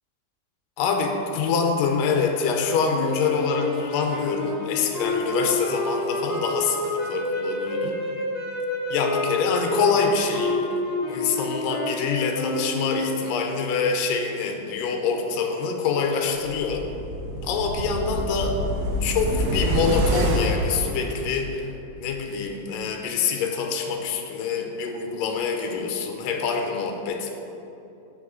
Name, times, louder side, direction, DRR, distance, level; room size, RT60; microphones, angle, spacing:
voice 1, 0.8-8.0 8.9-10.7 11.1-16.9 17.4-18.6 19.0-21.7 22.0-27.3, left 5 dB, 85° left, 3 dB, 2.3 m, -25 dB
sound 1, 2.9-13.4, left 1 dB, 35° left, 1.3 m, -29 dB
sound 2, 16.5-21.7 22.0-22.1, right 1 dB, 80° right, 1.5 m, -27 dB
5.9 x 4.8 x 6.3 m, 2.8 s
omnidirectional pair, 3.8 m